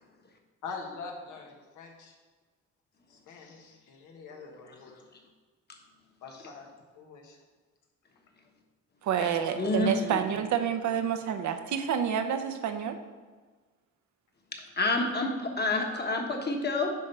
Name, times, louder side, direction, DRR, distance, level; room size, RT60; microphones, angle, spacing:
voice 1, 0.6-2.1 3.1-5.0 6.2-6.7 6.9-7.4 9.2-9.9 10.6-11.0, left 4 dB, 80° left, 1 dB, 1.5 m, -44 dB
voice 2, 9.0-13.0, right 8 dB, 70° right, 7 dB, 0.8 m, -29 dB
voice 3, 9.6-10.2 14.5-16.9, left 2 dB, 35° left, 2 dB, 1.4 m, -28 dB
10.0 x 3.7 x 5.5 m, 1.4 s
cardioid pair, 90°, 30 cm